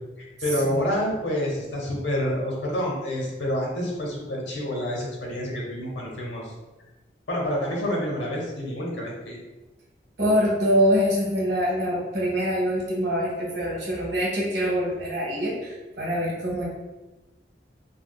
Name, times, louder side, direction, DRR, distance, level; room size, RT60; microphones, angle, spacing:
voice 1, 0.4-6.4 7.3-9.4, equal, 90° left, -2 dB, 0.9 m, -28 dB
voice 2, 10.2-16.7, equal, 70° right, -4 dB, 1.2 m, -24 dB
3.4 x 2.8 x 2.3 m, 1.1 s
head